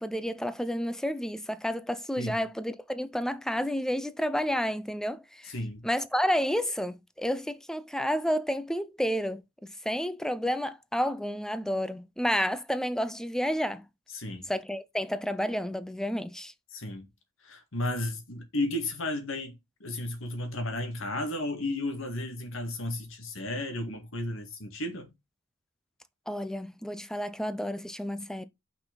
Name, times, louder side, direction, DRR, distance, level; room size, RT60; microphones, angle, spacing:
voice 1, 0.0-5.5 5.8-9.4 9.8-13.8 14.5-16.5 26.3-28.5, equal, 5° left, 0.6 m, -30 dB
voice 2, 5.5-5.9 14.1-14.5 16.7-17.1 17.4-25.1, left 1 dB, 70° left, 1.9 m, -33 dB
6.0 x 5.6 x 4.0 m
head